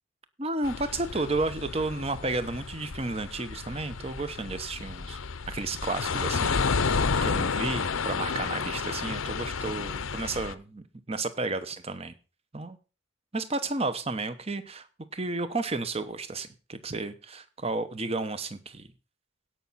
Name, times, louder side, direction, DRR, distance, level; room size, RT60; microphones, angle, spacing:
voice 1, 0.4-5.2 5.5-12.1 12.5-12.8 13.3-14.9 15.1-18.9, right 3 dB, 30° right, 12 dB, 1.0 m, -32 dB
sound 1, 0.6-10.5, left 5 dB, 75° left, 0.7 m, -31 dB
17.0 x 5.8 x 4.2 m, 0.33 s
head